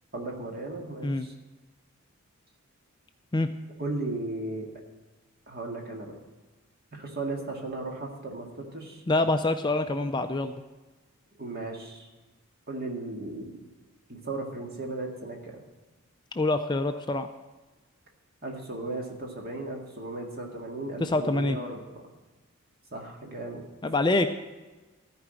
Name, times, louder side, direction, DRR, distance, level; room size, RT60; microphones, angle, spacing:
voice 1, 0.1-1.3 3.8-4.7 5.5-6.2 6.9-9.0 11.4-12.1 12.7-13.5 14.1-15.6 18.4-21.8 22.9-23.6, right 2 dB, 45° right, 0 dB, 2.0 m, -36 dB
voice 2, 9.1-10.6 16.4-17.3 21.0-21.6 23.8-24.3, left 2 dB, 20° left, 8 dB, 0.4 m, -25 dB
14.0 x 4.9 x 8.8 m, 1.2 s
head